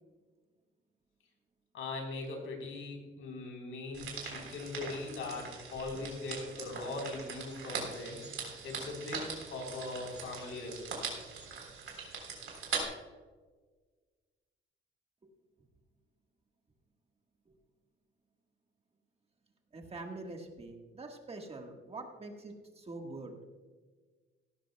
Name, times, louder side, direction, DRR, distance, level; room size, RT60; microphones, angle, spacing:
voice 1, 1.7-9.2 9.5-11.1, left 3 dB, 80° left, 1 dB, 3.7 m, -40 dB
sound 1, 3.9-12.8, right 5 dB, 80° right, 3.6 m, -41 dB
voice 2, 19.7-23.3, right 2 dB, 30° right, 3 dB, 1.4 m, -44 dB
16.5 x 13.0 x 2.2 m, 1.4 s
wide cardioid pair, 150°, 21 cm